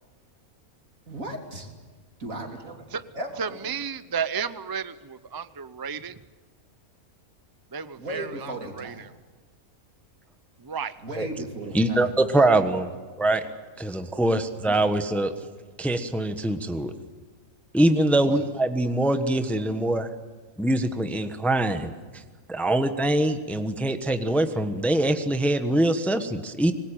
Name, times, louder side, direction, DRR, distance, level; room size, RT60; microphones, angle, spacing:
voice 1, 1.1-1.7 2.2-2.8 3.1-3.7 8.0-9.1 11.0-12.7 13.4-13.6 14.7-14.9 18.3-18.5, right 1 dB, 65° right, 3 dB, 3.8 m, -36 dB
voice 2, 3.4-6.2 7.7-8.9 10.6-10.9, right 6 dB, 30° right, 14 dB, 0.4 m, -32 dB
voice 3, 11.7-12.9 13.2-13.4 13.8-15.3 15.8-16.9 17.7-20.1 20.6-22.2 22.5-26.7, right 1 dB, ahead, 8 dB, 1.1 m, -23 dB
25.0 x 20.5 x 9.1 m, 1.4 s
omnidirectional pair, 1.5 m